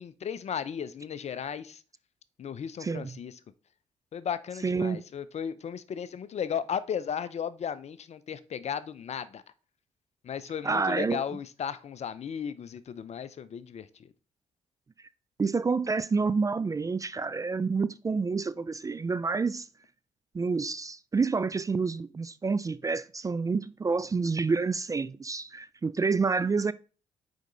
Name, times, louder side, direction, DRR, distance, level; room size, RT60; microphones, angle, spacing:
voice 1, 0.0-1.8 2.4-3.4 4.1-9.4 10.2-14.1, left 8 dB, 50° left, 0.6 m, -35 dB
voice 2, 2.8-3.2 4.6-5.0 10.6-11.2 15.4-19.7 20.3-26.7, right 4 dB, 25° right, 0.3 m, -28 dB
5.1 x 4.8 x 3.9 m
hypercardioid pair, 45°, 15 cm